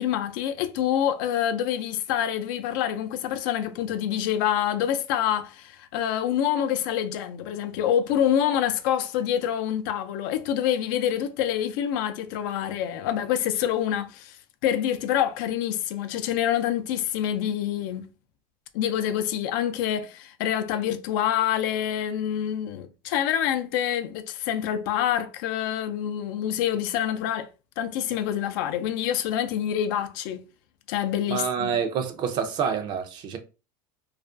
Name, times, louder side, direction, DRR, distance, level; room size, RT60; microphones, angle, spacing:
voice 1, 0.0-14.4 14.6-18.1 18.7-27.5 27.8-30.5 30.9-31.8, left 10 dB, 70° left, 0.4 m, -26 dB
voice 2, 31.3-33.4, right 7 dB, 45° right, 0.5 m, -27 dB
2.3 x 2.2 x 2.4 m
supercardioid pair, 115°, 11 cm